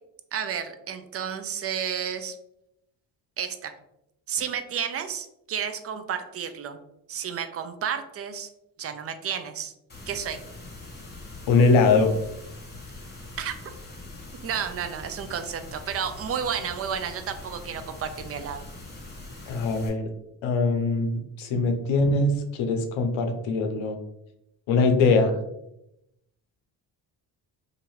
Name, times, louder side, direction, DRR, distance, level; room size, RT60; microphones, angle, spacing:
voice 1, 0.3-2.4 3.4-3.7 4.3-6.8 7.1-8.5 8.8-9.7 10.1-10.4 13.4-13.6 14.4-18.7, right 8 dB, 35° right, 9 dB, 0.4 m, -31 dB
sound 1, 9.9-19.9, left 2 dB, 20° left, 1.1 m, -42 dB
voice 2, 11.5-12.1 19.5-20.1 20.4-23.9 24.7-25.4, left 3 dB, 75° left, 6 dB, 0.7 m, -22 dB
2.7 x 2.4 x 3.0 m, 0.83 s
supercardioid pair, 55°, 48 cm